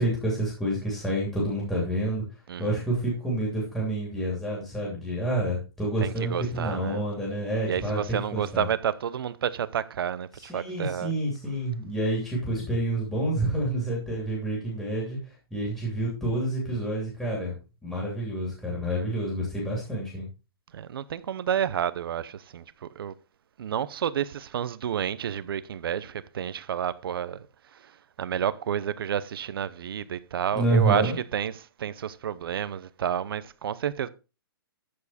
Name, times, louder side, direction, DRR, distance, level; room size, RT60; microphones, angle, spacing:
voice 1, 0.0-2.2 2.6-8.7 10.3-17.5 17.8-20.3 30.5-31.2, right 1 dB, 5° left, 2.8 m, -28 dB
voice 2, 6.0-7.0 7.6-11.1 20.7-23.1 23.6-27.5 27.7-27.9 28.2-34.1, right 9 dB, 70° right, 0.8 m, -30 dB
13.5 x 4.8 x 4.2 m
hypercardioid pair, 155°, 13 cm